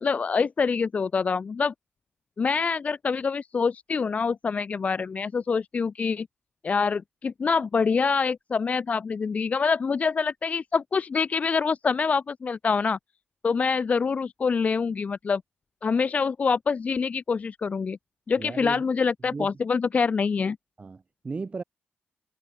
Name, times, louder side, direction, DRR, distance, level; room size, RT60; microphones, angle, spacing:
voice 1, 0.0-1.7 2.4-6.3 6.6-13.0 13.4-15.4 15.8-18.0 18.3-20.6, left 5 dB, 35° left, 0.3 m, -25 dB
voice 2, 18.4-18.8 19.3-19.5 20.8-21.6, right 4 dB, 30° right, 6.0 m, -35 dB
wide cardioid pair, 130°, 4 cm